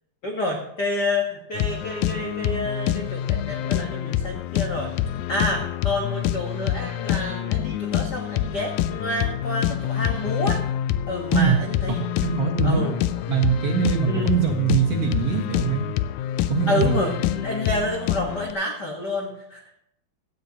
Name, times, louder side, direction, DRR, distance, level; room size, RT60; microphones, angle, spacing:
voice 1, 0.2-5.0 5.3-10.6 11.1-12.0 12.6-13.0 14.1-14.3 16.7-19.7, left 1 dB, 60° left, 0 dB, 1.0 m, -28 dB
sound 1, 1.5-18.5, left 12 dB, 90° left, 1.6 m, -26 dB
voice 2, 11.9-12.8 13.3-15.9 16.5-17.0, right 6 dB, 55° right, 0 dB, 2.1 m, -22 dB
16.5 x 12.5 x 2.9 m, 0.78 s
omnidirectional pair, 4.0 m